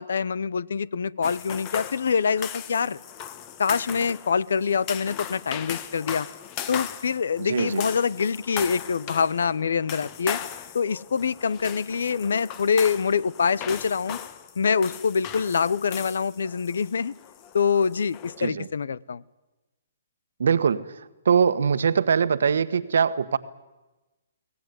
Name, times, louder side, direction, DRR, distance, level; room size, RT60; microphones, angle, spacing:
voice 1, 0.0-3.0 3.6-6.3 6.7-10.4 10.7-14.2 14.6-17.1 17.5-19.2, left 6 dB, 75° left, 22 dB, 0.8 m, -25 dB
sound 1, 1.2-18.5, left 10 dB, 30° left, 1.6 m, -38 dB
voice 2, 7.4-7.8 18.4-18.7 20.4-23.4, right 6 dB, 75° right, 13 dB, 1.4 m, -23 dB
23.5 x 18.5 x 9.5 m, 1.1 s
hypercardioid pair, 145°, 0 cm